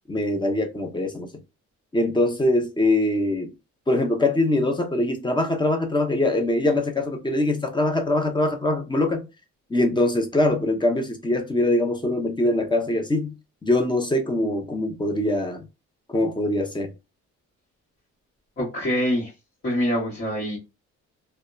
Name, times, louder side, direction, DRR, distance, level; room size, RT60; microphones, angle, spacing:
voice 1, 0.1-1.3 1.9-3.5 3.9-9.3 9.7-13.3 13.6-15.7 16.1-16.9, left 1 dB, 15° left, 0.6 m, -23 dB
voice 2, 18.6-19.3 19.6-20.6, equal, 40° left, 1.0 m, -25 dB
2.7 x 2.1 x 2.2 m
cardioid pair, 90°, 30 cm